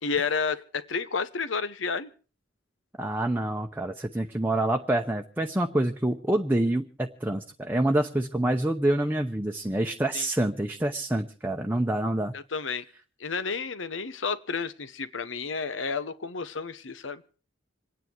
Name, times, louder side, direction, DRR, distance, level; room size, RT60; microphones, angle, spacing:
voice 1, 0.0-2.1 10.1-10.2 12.3-12.8 13.2-17.2, left 5 dB, 85° left, 14 dB, 1.0 m, -31 dB
voice 2, 3.0-12.3, right 1 dB, 10° right, 3 dB, 0.8 m, -27 dB
27.0 x 9.7 x 4.6 m, 0.38 s
head